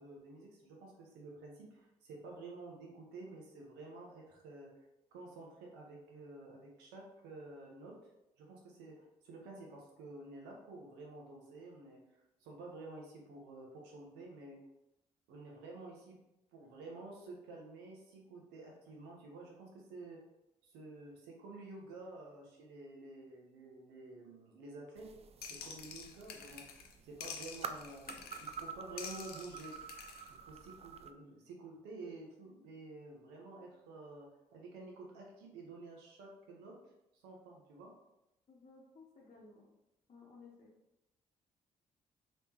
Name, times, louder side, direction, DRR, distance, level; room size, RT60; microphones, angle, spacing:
voice 1, 0.0-8.1 8.4-14.6 15.3-16.2 16.5-20.2 20.6-25.1 25.5-26.7 27.0-29.8 30.4-36.8 37.1-37.9, right 2 dB, 80° right, -1 dB, 0.9 m, -51 dB
sound 1, 25.0-31.1, right 6 dB, 35° right, 0.3 m, -49 dB
sound 2, 25.4-26.9 27.2-28.6 29.0-30.3, left 6 dB, 65° left, 0.5 m, -48 dB
voice 2, 38.5-39.7 40.1-40.7, left 4 dB, 40° left, -4 dB, 0.9 m, -57 dB
3.4 x 3.1 x 2.9 m, 0.90 s
hypercardioid pair, 50°, 17 cm